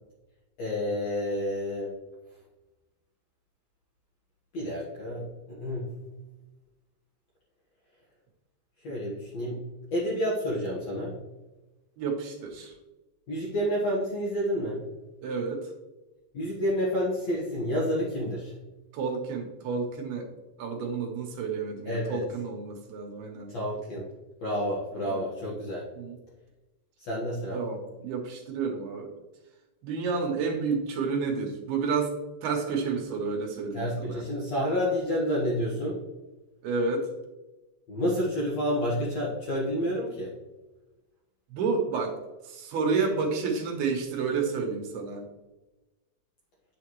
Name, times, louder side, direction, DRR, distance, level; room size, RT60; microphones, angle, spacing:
voice 1, 0.6-1.9 4.5-5.9 8.8-9.6 9.9-11.1 13.3-14.8 16.3-18.5 21.9-22.2 23.5-24.1 24.4-25.8 27.0-27.6 33.7-36.0 37.9-40.3, equal, 55° left, -5 dB, 2.0 m, -29 dB
voice 2, 12.0-12.7 15.2-15.7 18.9-20.3 20.6-23.5 25.0-25.2 26.0-26.2 27.5-29.1 29.8-32.1 32.4-34.2 36.6-37.1 41.5-42.2 42.4-45.2, right 4 dB, 70° right, 1 dB, 2.8 m, -30 dB
9.0 x 6.7 x 3.1 m, 1.1 s
omnidirectional pair, 5.0 m